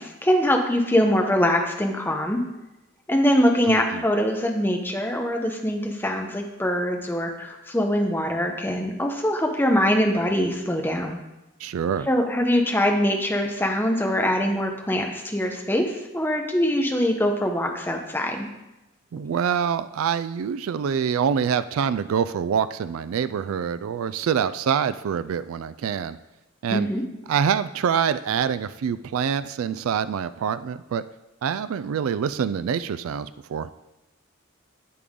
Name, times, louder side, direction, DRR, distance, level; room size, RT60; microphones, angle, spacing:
voice 1, 0.0-2.4 3.1-11.2 12.1-18.5 26.7-27.0, equal, 10° left, 2 dB, 0.8 m, -23 dB
voice 2, 3.6-4.0 11.6-12.1 19.1-26.2 26.6-26.9 27.3-31.0 31.4-33.7, right 7 dB, 85° right, 14 dB, 0.3 m, -25 dB
8.6 x 8.5 x 3.7 m, 0.99 s
head